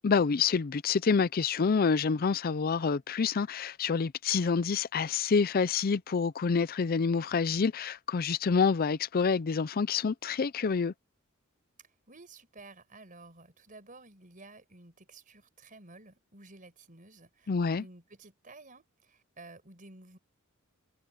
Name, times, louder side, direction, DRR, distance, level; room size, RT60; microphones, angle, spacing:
voice 1, 0.0-10.9 17.5-17.8, left 5 dB, 45° left, 0.5 m, -27 dB
voice 2, 11.8-17.5 17.8-20.2, right 2 dB, 40° right, 5.4 m, -53 dB
head